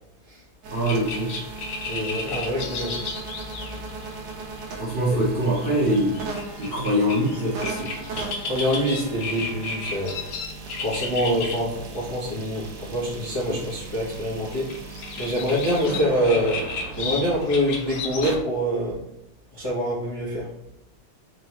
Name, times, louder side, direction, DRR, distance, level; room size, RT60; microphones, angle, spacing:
sound 1, 0.6-18.4, right 4 dB, 70° right, 1.1 m, -38 dB
voice 1, 0.7-1.3 4.8-6.1 6.6-7.9 13.5-13.6, equal, 55° right, -7 dB, 0.6 m, -23 dB
sound 2, 0.8-11.6 11.9-12.0 12.3-18.4, left 4 dB, 80° left, 1.6 m, -34 dB
voice 2, 1.8-3.0 8.4-10.2 10.8-14.8 15.2-16.6 17.0-19.0 19.5-20.5, equal, 20° left, -7 dB, 0.6 m, -25 dB
3.7 x 3.6 x 3.0 m, 0.81 s
omnidirectional pair, 2.4 m